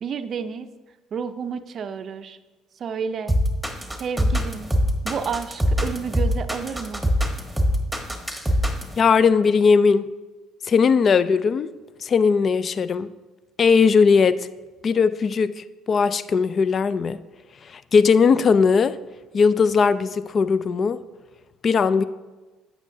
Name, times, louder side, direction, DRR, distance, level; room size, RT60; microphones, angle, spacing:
voice 1, 0.0-0.7 1.1-2.4 2.8-3.4 4.0-4.7 5.0-7.1, right 6 dB, 50° right, 0.5 m, -30 dB
sound 1, 3.3-8.9, equal, ahead, 1.2 m, -22 dB
voice 2, 9.0-10.1 10.7-11.7 12.0-13.1 13.6-14.5 14.8-17.2 17.7-19.0 19.3-21.0 21.6-22.0, left 5 dB, 45° left, 0.4 m, -18 dB
9.0 x 7.3 x 2.7 m
supercardioid pair, 75°, 0 cm